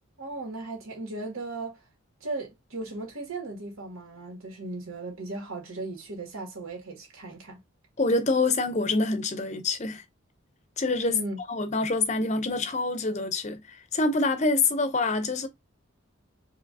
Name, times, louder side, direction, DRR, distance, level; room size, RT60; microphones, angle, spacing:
voice 1, 0.2-1.8 2.2-7.6 11.1-11.4, right 2 dB, 90° right, 2.1 m, -37 dB
voice 2, 8.0-10.0 10.8-11.2 11.5-13.6 13.9-15.5, left 3 dB, 35° left, 0.7 m, -26 dB
4.7 x 3.0 x 2.7 m
head